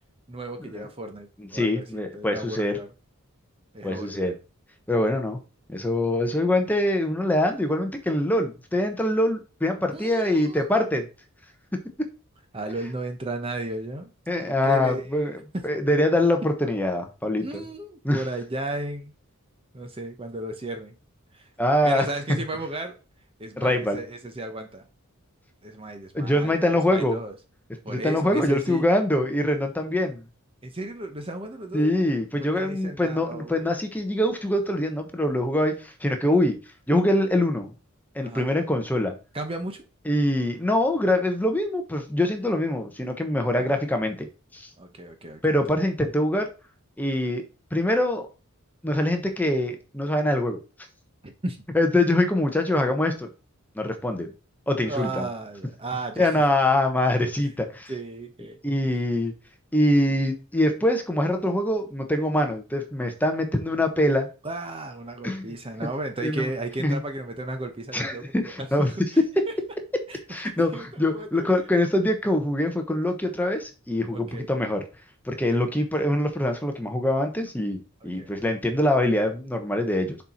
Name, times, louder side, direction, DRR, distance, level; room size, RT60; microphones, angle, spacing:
voice 1, 0.3-2.9 3.7-4.3 9.9-10.7 12.5-14.1 14.4-15.6 17.4-19.1 19.7-20.9 21.3-21.5 21.8-23.0 23.4-24.9 25.6-26.6 26.9-27.4 27.8-28.9 30.6-32.0 32.4-33.7 38.2-38.5 39.3-39.8 43.6-43.7 44.8-45.8 51.2-51.6 54.8-56.4 57.9-59.0 64.4-69.0 70.1-70.2 70.4-71.7 74.1-74.5 75.5-75.7 78.0-78.3, right 1 dB, 25° right, 0.8 m, -35 dB
voice 2, 1.5-2.8 3.8-4.3 4.9-5.4 5.7-11.0 14.3-15.3 15.6-17.6 18.0-18.2 21.6-22.1 23.6-24.0 26.1-27.2 27.9-30.2 31.7-36.6 36.9-37.7 38.1-39.1 40.1-44.3 44.5-44.7 45.4-46.5 47.0-47.4 47.7-48.3 48.8-50.6 51.7-53.3 53.8-54.3 54.7-55.2 56.2-57.9 58.6-59.3 59.7-64.3 65.2-65.4 66.2-66.5 66.8-67.0 67.9-68.9 70.3-70.7 71.0-74.8 75.2-80.2, left 1 dB, 10° left, 1.0 m, -24 dB
6.8 x 4.4 x 4.3 m
head